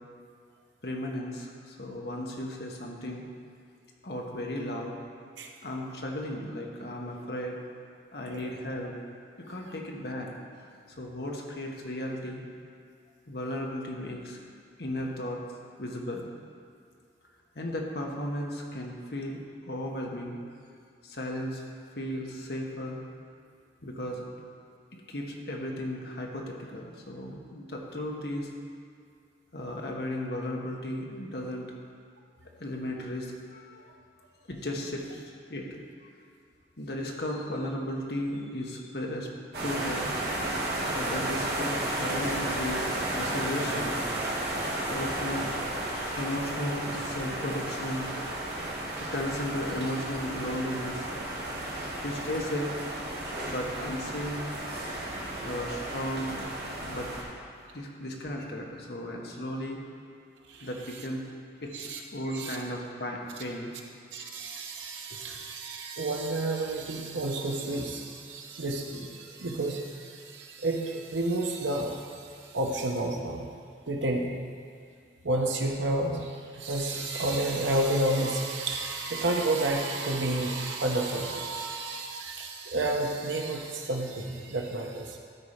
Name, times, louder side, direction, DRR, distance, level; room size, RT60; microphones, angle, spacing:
voice 1, 0.8-3.2 4.0-5.0 5.6-7.6 8.1-8.9 9.4-10.3 11.0-12.4 13.3-14.4 14.8-15.4 15.8-16.3 17.5-19.4 19.7-20.4 21.0-21.6 22.0-23.0 23.8-24.2 24.9-28.5 29.5-31.7 32.6-33.8 34.5-35.2 35.5-35.7 36.8-39.3 39.6-40.1 40.9-44.0 44.9-45.5 46.1-48.1 48.4-48.7 49.0-51.1 52.0-52.7 53.5-54.4 55.4-56.4 56.9-57.1 57.7-59.8 60.6-61.2 61.6-61.9 62.1-63.7 65.1-65.4, left 1 dB, 60° left, 0 dB, 1.2 m, -35 dB
sound 1, 39.5-57.2, right 1 dB, 60° right, 1.7 m, -33 dB
voice 2, 64.1-73.5 73.9-74.3 75.2-85.2, right 2 dB, 85° right, 1 dB, 1.0 m, -30 dB
12.5 x 4.3 x 5.1 m, 2.3 s
head